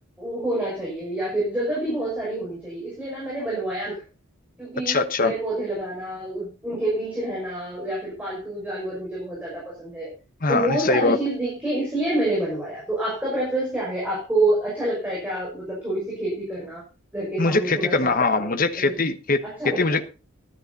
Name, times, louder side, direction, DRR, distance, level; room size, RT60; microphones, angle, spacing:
voice 1, 0.2-4.0 4.6-10.1 10.5-16.8 17.1-19.0 19.4-20.0, right 1 dB, 5° right, -5 dB, 6.0 m, -27 dB
voice 2, 4.9-5.3 10.4-11.2 17.4-19.4 19.8-20.0, left 3 dB, 40° left, 10 dB, 1.1 m, -22 dB
13.5 x 11.5 x 4.1 m, 0.33 s
head